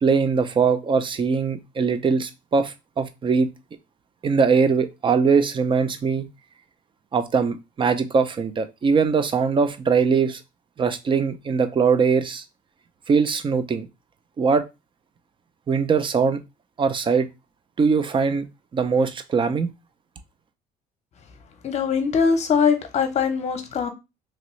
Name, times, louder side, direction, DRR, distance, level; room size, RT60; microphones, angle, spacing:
voice 1, 0.0-3.5 4.2-6.3 7.1-10.4 10.8-12.4 13.1-13.9 14.4-14.7 15.7-16.4 16.8-17.3 17.8-18.5 18.7-19.7, right 5 dB, 30° right, 0.5 m, -21 dB
voice 2, 21.6-23.9, left 6 dB, 40° left, 0.7 m, -22 dB
3.0 x 2.5 x 3.1 m
cardioid pair, 110°, 17 cm